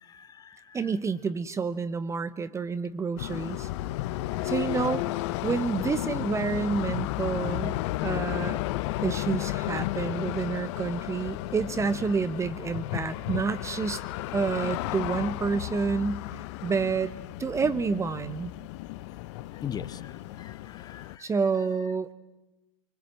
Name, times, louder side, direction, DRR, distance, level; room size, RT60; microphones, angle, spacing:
voice 1, 0.0-0.8 4.2-4.5 8.1-8.2 19.5-21.3, left 8 dB, 20° left, 14 dB, 1.0 m, -42 dB
voice 2, 0.7-3.7 4.4-5.2 5.4-8.6 9.0-14.0 14.3-16.2 16.6-17.1 17.4-18.5 21.2-22.1, right 5 dB, 15° right, 15 dB, 0.9 m, -29 dB
sound 1, 3.2-21.2, left 16 dB, 50° left, 0.8 m, -33 dB
24.5 x 24.0 x 7.6 m, 1.0 s
hypercardioid pair, 105°, 18 cm